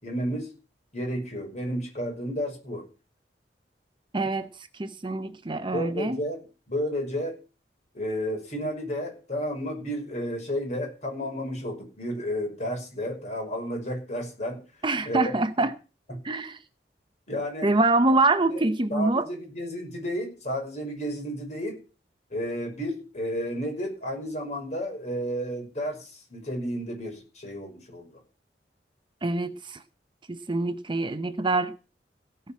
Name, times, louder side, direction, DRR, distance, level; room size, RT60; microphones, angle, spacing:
voice 1, 0.0-0.5 0.9-2.8 5.7-6.4 6.7-7.4 7.9-14.6 15.1-15.3 17.3-17.7 18.5-18.6 18.9-21.8 22.3-28.2, equal, 45° left, 5.8 m, -32 dB
voice 2, 4.1-4.5 4.8-6.2 14.8-15.7 16.2-16.6 17.6-19.3 29.2-29.8 30.3-31.7, right 2 dB, 30° right, 0.7 m, -25 dB
17.5 x 6.0 x 7.3 m
head